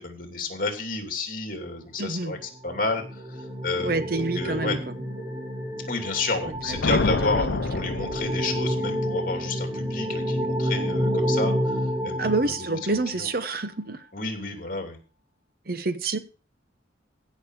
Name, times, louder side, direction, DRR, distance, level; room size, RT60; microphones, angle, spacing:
voice 1, 0.0-4.8 5.9-13.3 14.1-15.0, left 3 dB, 45° left, 2.8 m, -31 dB
voice 2, 2.0-2.4 3.8-4.8 6.7-7.0 7.4-7.6 12.2-14.0 15.7-16.2, right 3 dB, 50° right, 0.9 m, -27 dB
sound 1, 2.4-13.2, equal, 25° right, 2.5 m, -29 dB
sound 2, 6.4-8.9, left 3 dB, 70° left, 0.7 m, -28 dB
16.0 x 6.3 x 4.8 m
head